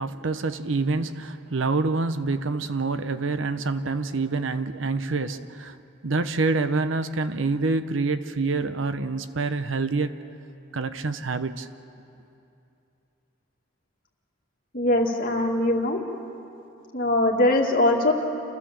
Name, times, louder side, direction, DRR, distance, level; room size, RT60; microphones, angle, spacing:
voice 1, 0.0-5.8 6.0-10.2 10.7-11.7, right 3 dB, 70° right, 11 dB, 0.8 m, -26 dB
voice 2, 14.7-16.0 16.9-18.1, left 1 dB, 45° left, 0 dB, 2.3 m, -21 dB
29.5 x 13.5 x 7.6 m, 2.7 s
head